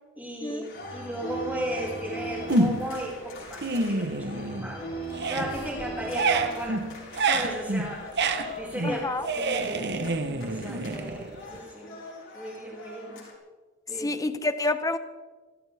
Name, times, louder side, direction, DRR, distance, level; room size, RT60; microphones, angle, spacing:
voice 1, 0.2-5.0 5.3-6.9 7.2-8.1 8.5-10.1 10.4-11.9 12.3-13.2 13.9-14.1, equal, 5° right, -4 dB, 5.2 m, -35 dB
sound 1, 0.6-13.3, right 1 dB, 60° left, 4.4 m, -41 dB
sound 2, 2.5-3.0 3.4-4.8 5.1-11.6, right 3 dB, 50° right, 1.1 m, -28 dB
voice 2, 8.8-9.3 14.0-15.0, left 2 dB, 15° left, 10 dB, 0.8 m, -28 dB
27.5 x 13.5 x 3.5 m, 1.4 s
head